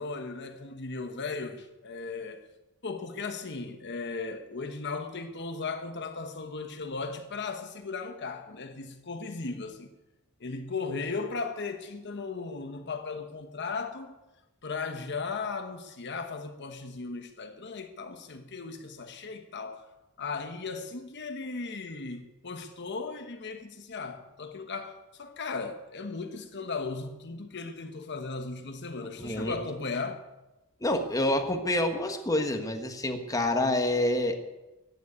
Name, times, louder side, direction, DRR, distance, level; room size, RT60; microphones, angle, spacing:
voice 1, 0.0-2.4 2.8-9.9 10.4-14.1 14.6-19.9 20.2-30.2, left 4 dB, 50° left, 1.1 m, -36 dB
voice 2, 29.2-29.6 30.8-34.4, left 1 dB, 15° left, 1.4 m, -27 dB
14.5 x 9.4 x 9.5 m
head